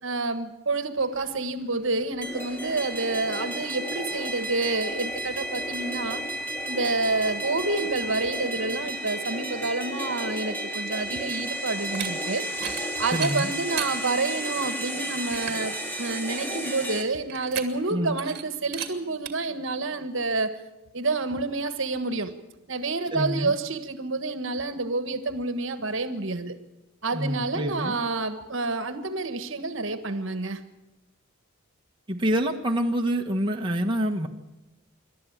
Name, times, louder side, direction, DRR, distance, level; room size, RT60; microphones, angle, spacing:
voice 1, 0.0-6.2 6.7-20.6 20.9-22.4 22.7-26.6 27.0-30.6, right 3 dB, 65° right, 9 dB, 1.4 m, -29 dB
sound 1, 1.0-8.9, left 1 dB, 65° left, 5.0 m, -55 dB
sound 2, 2.2-17.0, right 1 dB, 10° left, 2.3 m, -32 dB
sound 3, 11.8-12.1 12.5-12.8 13.1-13.9 14.5-14.6 15.0-15.1 15.3-15.6 17.3-17.9 18.2-18.4 18.7-18.9 19.3-19.4, right 9 dB, 50° right, 2.2 m, -34 dB
voice 2, 13.1-13.5 17.9-18.2 23.1-23.5 27.1-27.9 32.1-34.3, equal, 25° right, 1 dB, 1.3 m, -26 dB
26.5 x 12.5 x 8.8 m, 1.0 s
head